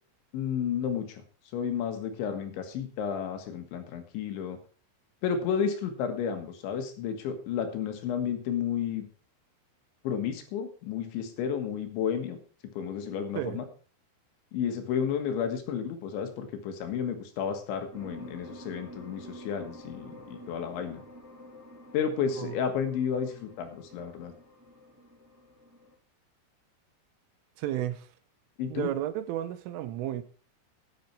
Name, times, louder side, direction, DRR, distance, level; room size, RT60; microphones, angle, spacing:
voice 1, 0.3-1.2 1.5-4.6 5.2-9.1 10.0-12.4 12.8-13.7 14.5-21.0 21.9-24.3 28.6-28.9, left 7 dB, 70° left, 3.8 m, -32 dB
sound 1, 17.9-25.9, equal, 5° right, 3.7 m, -49 dB
voice 2, 27.6-28.1 28.7-30.2, right 12 dB, 80° right, 3.4 m, -32 dB
11.0 x 10.5 x 4.6 m
omnidirectional pair, 5.8 m